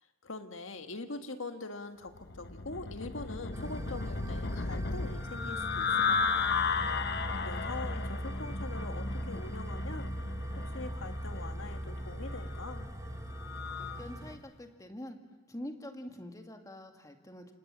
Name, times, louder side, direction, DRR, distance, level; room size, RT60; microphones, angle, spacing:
voice 1, 0.2-6.6 7.4-10.1 10.6-12.9, left 3 dB, 75° left, 7 dB, 1.8 m, -43 dB
sound 1, 2.2-14.0, left 5 dB, 55° left, 1.1 m, -35 dB
sound 2, 3.5-14.4, equal, 20° right, 1.8 m, -40 dB
voice 2, 13.8-15.2 15.5-17.5, left 1 dB, 15° left, 5 dB, 2.0 m, -45 dB
29.0 x 26.0 x 7.5 m, 1.2 s
head